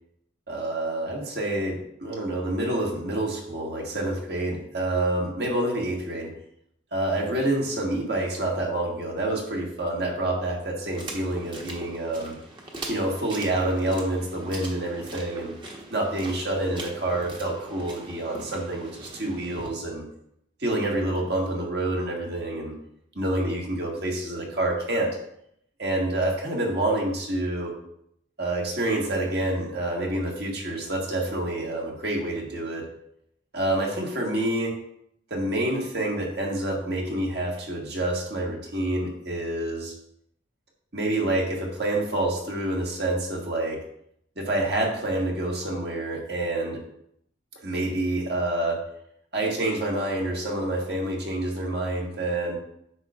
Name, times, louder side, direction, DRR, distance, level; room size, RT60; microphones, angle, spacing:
voice 1, 0.5-6.3 6.9-12.4 12.9-15.5 15.9-20.0 20.6-22.7 23.1-25.2 25.8-27.7 28.4-32.9 33.5-34.7 35.3-39.9 40.9-43.8 44.3-46.8 47.6-48.8 49.3-52.6, right 1 dB, 55° right, -1 dB, 1.7 m, -27 dB
sound 1, 10.9-19.7, right 2 dB, 25° right, 1.1 m, -41 dB
9.4 x 6.2 x 2.4 m, 0.73 s
head